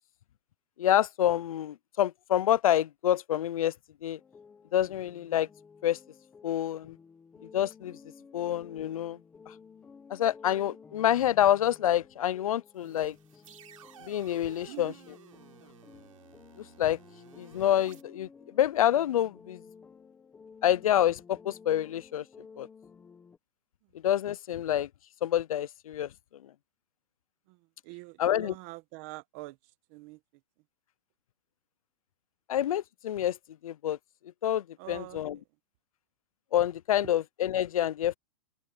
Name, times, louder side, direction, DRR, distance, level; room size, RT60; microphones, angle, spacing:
voice 1, 0.8-3.7 4.0-4.2 4.7-5.5 5.8-6.0 6.4-6.9 7.5-8.0 8.3-9.2 9.5-9.6 10.1-13.1 14.1-14.9 16.8-17.0 17.4-18.3 18.6-19.6 20.6-22.2 22.6-22.7 24.0-24.9 25.2-26.1 28.2-28.5 32.5-33.4 33.6-34.0 34.4-35.4 36.5-38.1, left 11 dB, 80° left, 0.5 m, -27 dB
sound 1, 4.2-23.4, left 5 dB, 5° left, 0.9 m, -54 dB
sound 2, 12.7-18.0, right 10 dB, 70° right, 5.5 m, -54 dB
voice 2, 14.6-14.9 27.5-29.6 29.9-30.2 34.8-35.4, right 20 dB, 25° right, 1.0 m, -45 dB
hypercardioid pair, 175°, 18 cm